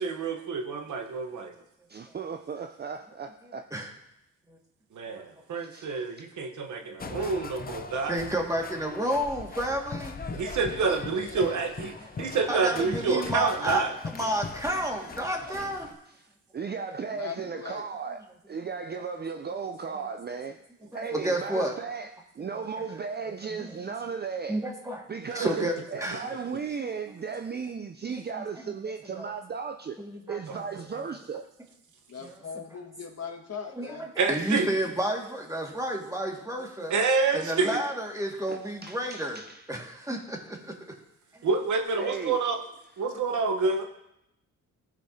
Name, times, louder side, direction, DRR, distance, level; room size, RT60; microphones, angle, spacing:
voice 1, 0.0-1.5 5.0-8.3 10.3-13.9 34.2-34.7 36.9-37.8 41.4-42.6 43.0-43.9, right 4 dB, 65° right, 4 dB, 1.1 m, -28 dB
voice 2, 1.9-3.6 5.6-5.9 12.0-12.1 15.4-15.7 16.1-16.2 16.5-20.6 20.9-24.6 25.1-25.6 25.9-30.0 30.3-31.4 37.5-37.6 38.5-39.6 42.0-42.4, right 5 dB, 30° right, 7 dB, 0.5 m, -36 dB
sound 1, 7.0-16.0, left 4 dB, 30° left, 0.6 m, -40 dB
voice 3, 7.8-10.2 12.0-12.1 12.5-15.9 20.9-21.8 22.5-22.6 23.2-23.7 24.5-25.0 25.3-26.6 28.1-28.7 29.1-29.3 30.0-30.6 30.9-31.1 32.2-32.4 33.8-36.9 37.3-39.4 39.7-40.8 41.3-41.5, right 1 dB, 10° right, 0 dB, 1.9 m, -31 dB
voice 4, 10.7-11.6 17.1-17.8 32.1-34.1, left 6 dB, 50° left, 1 dB, 1.7 m, -40 dB
14.5 x 5.2 x 2.8 m, 0.83 s
supercardioid pair, 60°, 32 cm